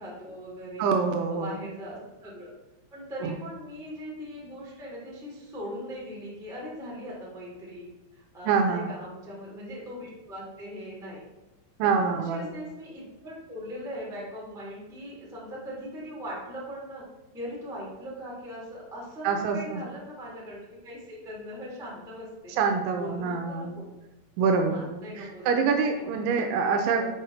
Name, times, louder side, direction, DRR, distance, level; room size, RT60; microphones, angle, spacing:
voice 1, 0.0-0.9 1.3-2.5 2.9-7.9 8.3-11.2 11.8-17.0 17.3-22.5 22.9-23.9 24.7-25.6 26.0-27.1, equal, 5° right, -6 dB, 0.3 m, -40 dB
voice 2, 0.8-1.5 3.2-3.3 8.5-8.9 11.8-12.4 19.2-19.8 22.5-23.7 24.4-27.1, right 5 dB, 80° right, 4 dB, 2.8 m, -26 dB
7.0 x 6.3 x 4.5 m, 1.1 s
omnidirectional pair, 5.8 m